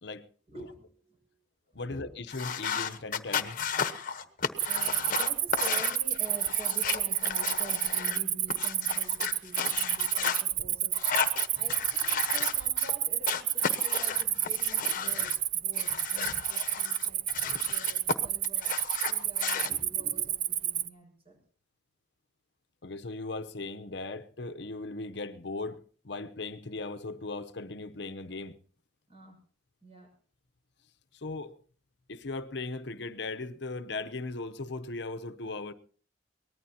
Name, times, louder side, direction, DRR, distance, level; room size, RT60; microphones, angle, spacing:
voice 1, 0.5-1.4 1.7-2.3 4.2-4.4 4.7-17.3 17.5-18.8 19.1-21.4 29.1-29.4 29.8-30.1, right 2 dB, 35° right, 6.3 m, -48 dB
voice 2, 1.7-3.6 4.6-4.9 22.8-28.6 31.1-31.6 32.1-35.7, left 3 dB, 70° left, 0.9 m, -38 dB
sound 1, 2.3-8.2 8.5-10.4 10.9-12.9 13.2-15.4 15.7-18.1 18.4-19.7, left 6 dB, 50° left, 1.1 m, -34 dB
Cricket, 4.6-20.9, right 11 dB, 50° right, 0.8 m, -30 dB
23.5 x 19.0 x 2.9 m
head